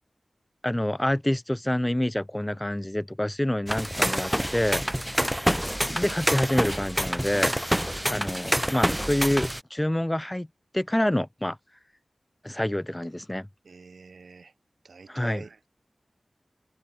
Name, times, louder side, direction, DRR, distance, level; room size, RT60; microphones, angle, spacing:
voice 1, 0.6-4.8 5.8-7.5 8.1-10.5 10.7-11.6 12.4-13.5 15.1-15.4, left 1 dB, 15° left, 1.9 m, -27 dB
sound 1, 3.7-9.6, equal, 5° right, 0.9 m, -27 dB
voice 2, 13.6-14.5 14.8-15.7, right 4 dB, 75° right, 6.2 m, -45 dB
open air
cardioid pair, 45°, 0 cm